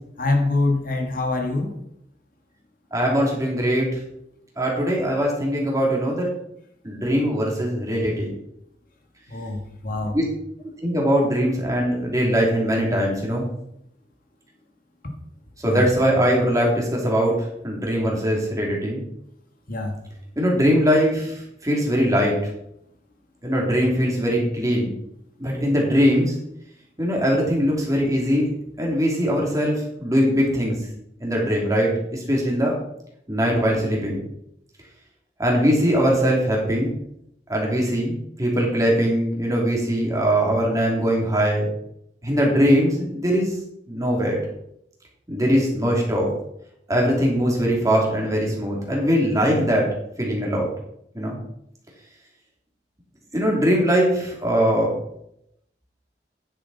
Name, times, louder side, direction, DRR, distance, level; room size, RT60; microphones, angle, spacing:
voice 1, 0.2-1.7 9.3-10.2 15.7-15.9 19.7-20.0, left 2 dB, 55° left, 1.8 m, -24 dB
voice 2, 2.9-4.0 4.6-6.3 6.8-8.3 10.1-10.2 10.8-13.5 15.6-19.0 20.4-22.4 23.4-24.9 25.4-26.4 27.0-28.5 28.8-30.8 31.2-32.7 33.3-34.2 35.4-36.9 37.5-41.7 42.2-43.5 43.9-44.4 45.3-46.3 46.9-49.9 50.2-50.7 51.1-51.4 53.3-54.9, equal, 20° right, 2.8 m, -21 dB
9.8 x 7.6 x 4.2 m
head